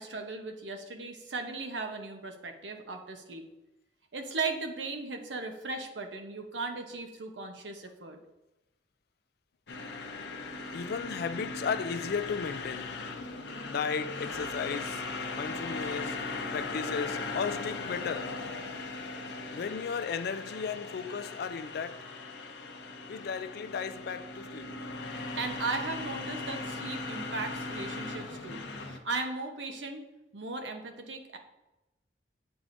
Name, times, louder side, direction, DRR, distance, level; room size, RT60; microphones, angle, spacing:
voice 1, 0.0-3.4 4.1-8.2 25.4-30.0 30.3-31.4, right 3 dB, 85° right, 0.9 m, -37 dB
sound 1, 9.7-29.0, left 3 dB, 80° left, 0.8 m, -38 dB
voice 2, 10.7-12.9 13.7-15.0 15.3-16.2 16.5-18.4 19.5-22.1 23.1-24.8, left 6 dB, 60° left, 0.3 m, -35 dB
8.8 x 4.7 x 2.6 m
head